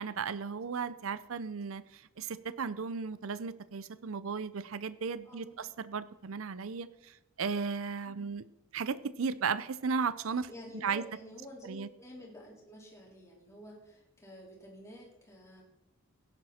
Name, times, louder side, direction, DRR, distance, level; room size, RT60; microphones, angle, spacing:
voice 1, 0.0-8.4 8.7-10.5 10.8-11.0 11.7-11.9, right 5 dB, 65° right, 15 dB, 0.5 m, -35 dB
voice 2, 5.2-5.7 8.1-8.3 10.5-15.6, left 1 dB, 15° left, -2 dB, 3.8 m, -50 dB
17.0 x 10.5 x 4.3 m, 0.88 s
head